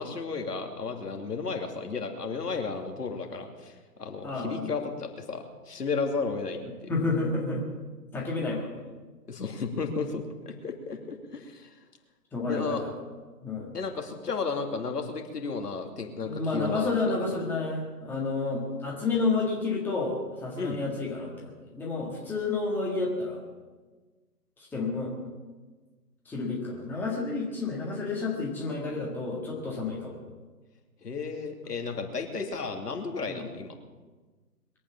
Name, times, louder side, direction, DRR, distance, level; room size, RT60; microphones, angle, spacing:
voice 1, 0.0-6.9 9.3-11.7 12.5-12.8 13.7-17.1 20.6-20.8 31.0-33.8, left 4 dB, 75° left, 4 dB, 2.7 m, -33 dB
voice 2, 4.2-4.7 6.9-7.6 8.1-8.9 12.3-12.9 13.4-13.7 16.2-23.4 24.6-25.1 26.3-30.2 33.3-33.4, left 3 dB, 5° left, -4 dB, 1.7 m, -30 dB
22.0 x 8.8 x 7.1 m, 1.3 s
figure-of-eight pair, 150°, 48 cm